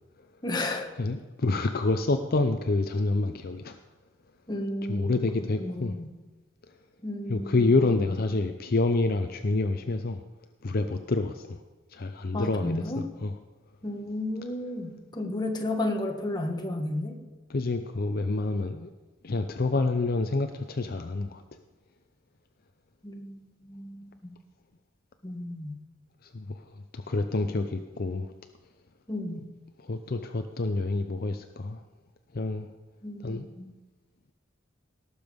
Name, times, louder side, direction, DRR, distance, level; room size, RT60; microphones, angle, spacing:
voice 1, 0.4-0.9 4.5-5.1 5.6-6.1 7.0-8.0 12.3-13.0 13.8-17.2 23.0-24.1 25.2-25.8 29.1-29.4 33.0-33.7, left 1 dB, 20° left, 2 dB, 1.5 m, -33 dB
voice 2, 1.0-3.8 4.9-5.9 7.3-10.2 10.6-11.6 11.9-13.3 17.5-18.9 19.2-21.4 26.2-28.3 29.8-31.8 32.3-32.7 33.2-33.5, left 3 dB, 50° left, 7 dB, 0.6 m, -28 dB
18.0 x 7.1 x 5.2 m, 1.2 s
head